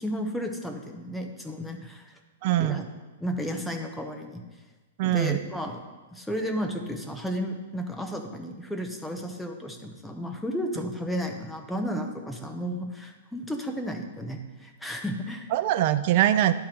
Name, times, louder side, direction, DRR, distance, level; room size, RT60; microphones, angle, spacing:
voice 1, 0.0-2.1 2.6-2.8 3.2-4.4 5.0-5.8 6.1-15.5, equal, 5° left, 3 dB, 0.7 m, -33 dB
voice 2, 2.4-2.8 5.0-5.4 15.5-16.5, right 13 dB, 40° right, 12 dB, 0.4 m, -22 dB
11.0 x 3.8 x 4.4 m, 1.2 s
hypercardioid pair, 160°, 0 cm